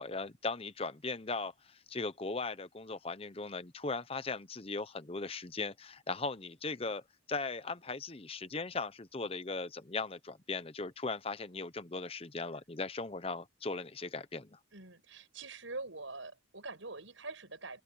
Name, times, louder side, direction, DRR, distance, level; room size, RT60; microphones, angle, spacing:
voice 1, 0.0-7.0 7.3-14.6, left 3 dB, 30° left, 0.8 m, -38 dB
voice 2, 14.7-17.8, right 3 dB, 75° right, 6.4 m, -44 dB
open air
head